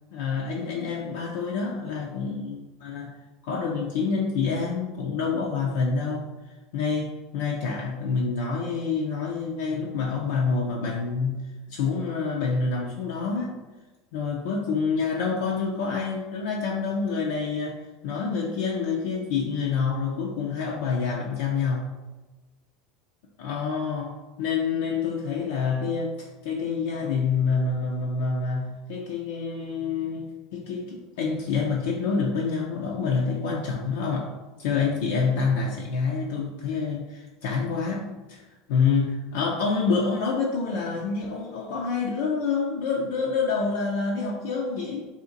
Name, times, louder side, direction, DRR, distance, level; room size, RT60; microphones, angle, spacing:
voice 1, 0.1-3.1 3.4-6.3 6.7-13.6 14.1-21.9 23.4-34.3 34.6-45.1, left 5 dB, 70° left, -2 dB, 0.4 m, -27 dB
2.7 x 2.4 x 3.7 m, 1.2 s
hypercardioid pair, 85°, 0 cm